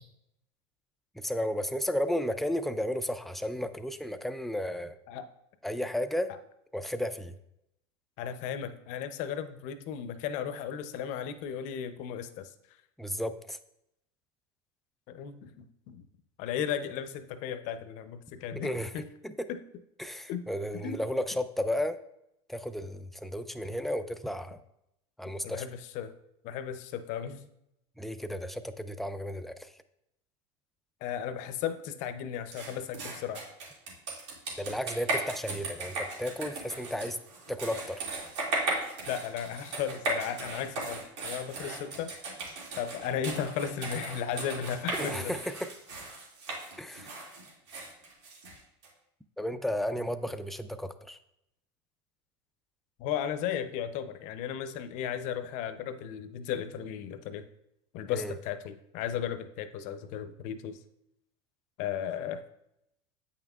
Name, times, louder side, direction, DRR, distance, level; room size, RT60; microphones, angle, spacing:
voice 1, 1.2-5.0 5.6-6.3 6.7-7.3 13.0-13.6 18.5-19.5 20.0-22.0 22.5-24.6 25.2-25.6 28.0-29.7 34.6-37.2 37.5-38.1 44.9-45.7 46.8-47.1 49.4-51.2 58.1-58.3, equal, ahead, 10 dB, 0.3 m, -33 dB
voice 2, 8.2-12.5 15.1-16.0 16.4-19.1 19.5-19.6 20.3-20.5 20.8-21.0 25.4-26.1 26.4-27.5 31.0-33.4 39.1-42.1 42.8-45.3 53.0-57.4 57.9-60.8 61.8-62.4, left 8 dB, 60° left, 11 dB, 0.6 m, -35 dB
sound 1, 32.5-48.9, right 2 dB, 90° right, 2.2 m, -37 dB
8.5 x 5.6 x 2.4 m, 0.81 s
supercardioid pair, 120°, 15 cm